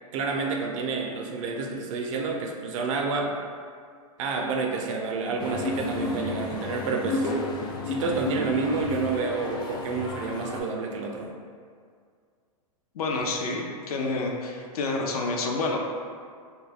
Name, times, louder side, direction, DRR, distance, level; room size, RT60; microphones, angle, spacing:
voice 1, 0.1-3.3 4.2-7.3 7.8-11.3, right 4 dB, 60° right, 1 dB, 0.5 m, -29 dB
sound 1, 5.4-10.6, left 2 dB, 25° left, 0.3 m, -31 dB
voice 2, 12.9-15.8, left 3 dB, 80° left, 1 dB, 0.5 m, -28 dB
2.3 x 2.1 x 3.3 m, 2.1 s
hypercardioid pair, 120°, 19 cm